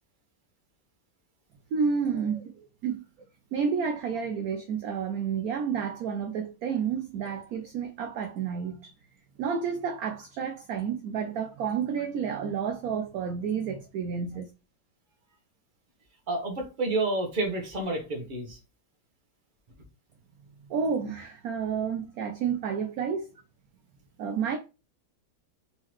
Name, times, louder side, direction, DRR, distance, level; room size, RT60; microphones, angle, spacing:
voice 1, 1.7-2.4 2.8-3.0 3.5-8.9 9.4-14.5 20.7-23.3 24.2-24.6, right 6 dB, 70° right, 0.9 m, -30 dB
voice 2, 16.3-18.6, right 2 dB, 30° right, 1.0 m, -29 dB
4.1 x 3.8 x 3.0 m
omnidirectional pair, 2.1 m